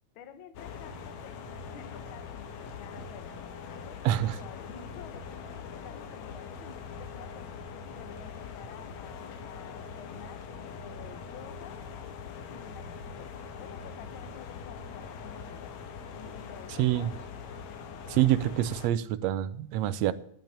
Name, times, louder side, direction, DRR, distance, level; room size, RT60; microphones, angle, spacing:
voice 1, 0.1-1.4 1.7-3.3 3.7-7.5 7.9-11.9 12.5-15.7 16.1-17.2, left 8 dB, 55° left, 1.6 m, -50 dB
sound 1, 0.5-18.9, left 5 dB, 70° left, 2.4 m, -42 dB
voice 2, 4.0-4.4 16.8-17.1 18.1-20.1, right 13 dB, 75° right, 1.7 m, -26 dB
10.5 x 8.1 x 8.7 m
omnidirectional pair, 3.4 m